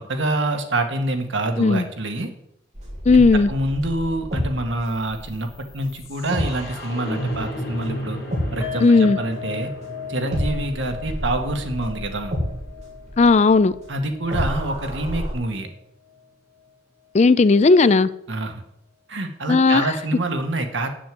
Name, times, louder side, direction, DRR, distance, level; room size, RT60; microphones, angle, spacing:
voice 1, 0.1-2.3 3.1-8.2 8.5-9.7 10.1-12.3 13.9-15.7 18.3-18.6 19.1-20.9, right 2 dB, 70° right, 1.7 m, -26 dB
sound 1, 2.7-9.8 10.3-15.3, equal, 35° right, 3.2 m, -30 dB
voice 2, 3.1-3.5 8.8-9.2 13.2-13.7 17.1-18.1 19.5-19.9, left 3 dB, 35° left, 0.4 m, -15 dB
sound 2, 4.9-14.9, equal, 55° left, 2.4 m, -36 dB
sound 3, 8.6-15.8 16.1-16.3 16.6-16.7, left 7 dB, 15° right, 2.9 m, -38 dB
8.9 x 7.0 x 7.7 m
head